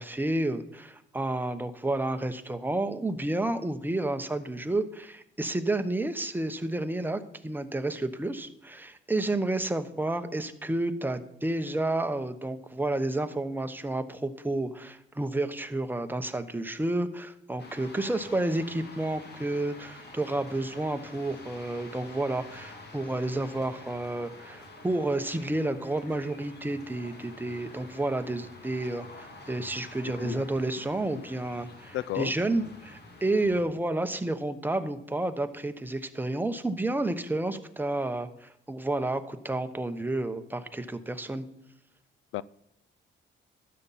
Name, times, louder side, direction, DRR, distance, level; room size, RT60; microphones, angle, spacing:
voice 1, 0.0-41.4, right 2 dB, 10° right, 8 dB, 0.9 m, -30 dB
sound 1, 17.6-33.6, left 2 dB, 55° left, 2.4 m, -48 dB
voice 2, 31.9-32.3 42.3-42.4, left 14 dB, 80° left, 21 dB, 0.4 m, -32 dB
12.5 x 8.5 x 4.1 m, 0.82 s
cardioid pair, 90°, 20 cm